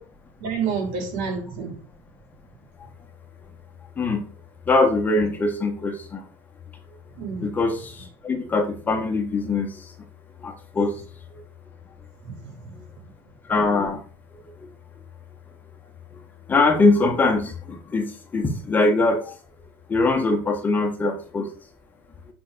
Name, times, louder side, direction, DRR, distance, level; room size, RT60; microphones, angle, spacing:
voice 1, 0.4-1.7 7.2-7.5 12.2-12.7, right 6 dB, 70° right, 1 dB, 5.6 m, -29 dB
voice 2, 4.7-6.2 7.4-9.9 10.4-10.9 11.3-11.4 13.5-14.0 16.5-18.1 18.3-19.3 19.9-21.5, left 3 dB, 15° left, 3 dB, 1.5 m, -22 dB
8.7 x 6.0 x 6.8 m, 0.38 s
cardioid pair, 180°, 11 cm